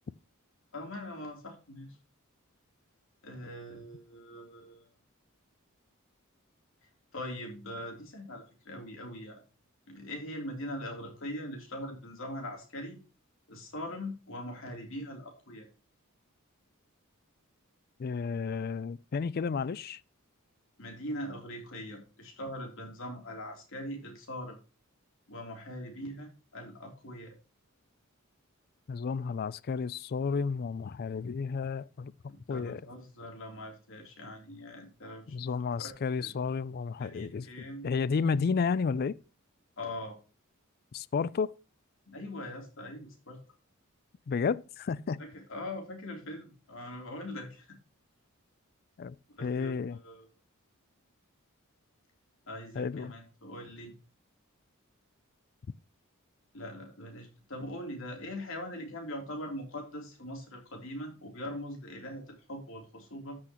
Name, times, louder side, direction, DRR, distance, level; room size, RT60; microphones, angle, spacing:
voice 1, 0.7-2.0 3.2-4.9 6.8-9.4 9.9-13.0 13.5-15.7 20.8-24.6 25.3-27.3 32.3-35.4 35.8-35.9 36.2-36.3 37.0-37.9 39.8-40.2 42.1-43.4 45.2-47.8 49.3-50.3 52.4-53.9 56.5-63.4, left 1 dB, 65° left, 3.3 m, -42 dB
voice 2, 18.0-20.0 28.9-32.1 32.5-32.8 35.3-39.2 40.9-41.5 44.3-45.2 49.0-49.2 49.4-50.0 52.8-53.1, left 5 dB, 45° left, 0.3 m, -32 dB
13.5 x 6.3 x 3.0 m
head